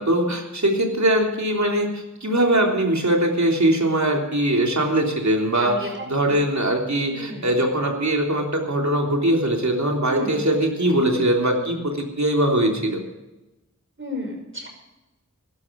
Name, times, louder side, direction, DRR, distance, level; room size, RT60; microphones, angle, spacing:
voice 1, 0.0-13.0, right 1 dB, 65° right, 1 dB, 3.4 m, -21 dB
voice 2, 5.6-5.9 6.2-6.4 7.1-7.5 10.1-10.4 14.0-14.7, left 1 dB, 40° right, 2 dB, 5.8 m, -32 dB
16.5 x 12.0 x 5.3 m, 1.0 s
wide cardioid pair, 45°, 31 cm